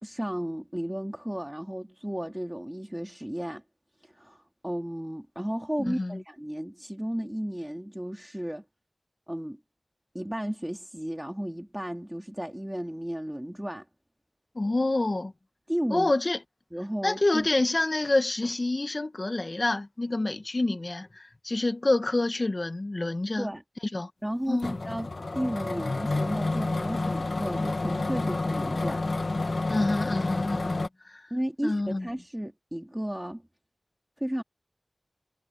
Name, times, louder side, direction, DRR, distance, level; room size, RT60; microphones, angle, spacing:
voice 1, 0.0-3.6 4.0-8.6 9.3-9.6 10.1-13.8 15.7-16.1 16.7-17.5 23.4-23.6 24.2-29.0 31.3-33.4 34.2-34.4, equal, 10° right, 2.4 m, -34 dB
voice 2, 5.9-6.2 14.5-15.3 15.9-16.4 17.0-23.5 23.9-24.1 24.5-24.7 29.7-31.3 31.6-32.1, left 2 dB, 55° left, 1.3 m, -27 dB
sound 1, 24.6-30.9, left 2 dB, 75° left, 1.6 m, -29 dB
wide cardioid pair, 45°, 0 cm